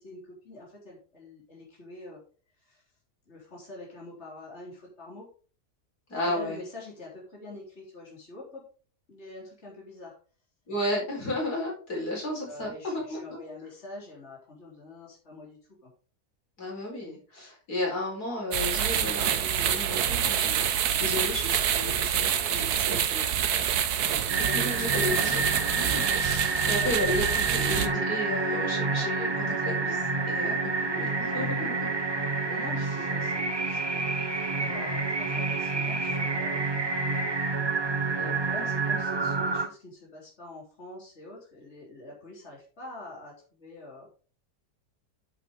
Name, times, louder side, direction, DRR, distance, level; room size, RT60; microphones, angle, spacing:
voice 1, 0.0-2.2 2.6-2.8 3.3-5.3 6.2-8.7 9.1-10.2 12.4-15.9 24.4-25.3 32.4-36.6 38.1-44.1, left 2 dB, 45° left, -4 dB, 3.9 m, -45 dB
voice 2, 6.1-6.6 10.7-13.4 16.6-23.3 23.7-25.4 25.7-31.9, left 1 dB, 75° left, -2 dB, 4.9 m, -33 dB
sound 1, 18.5-27.9, right 9 dB, 80° right, 1.4 m, -27 dB
sound 2, 24.3-39.7, right 3 dB, 20° right, 0.8 m, -28 dB
9.8 x 8.0 x 3.6 m, 0.39 s
omnidirectional pair, 1.7 m